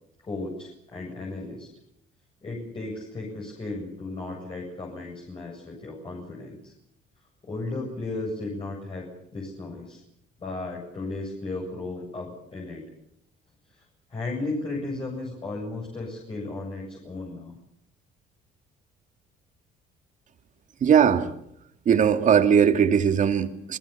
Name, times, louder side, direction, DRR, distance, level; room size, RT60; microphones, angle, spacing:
voice 1, 0.2-1.7 2.4-6.7 7.4-10.0 10.4-12.8 13.7-13.8 14.1-17.6, left 2 dB, 30° left, -1 dB, 7.9 m, -35 dB
voice 2, 20.8-21.3 21.9-23.8, right 8 dB, 50° right, 8 dB, 2.3 m, -19 dB
29.0 x 20.5 x 7.1 m, 0.73 s
cardioid pair, 110°, 17 cm